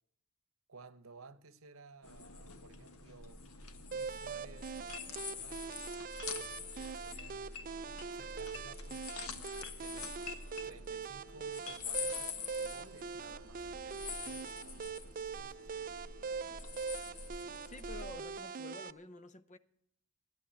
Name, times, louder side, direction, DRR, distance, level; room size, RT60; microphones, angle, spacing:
voice 1, 0.7-3.4 3.9-9.1 9.8-10.2 10.6-15.7, right 3 dB, 65° right, 0.9 m, -57 dB
sound 1, 2.0-18.2, left 5 dB, 80° left, 1.4 m, -46 dB
sound 2, 3.9-18.9, right 5 dB, 40° right, 0.5 m, -43 dB
voice 2, 17.7-19.6, left 2 dB, 35° left, 0.7 m, -49 dB
14.5 x 11.0 x 7.8 m
head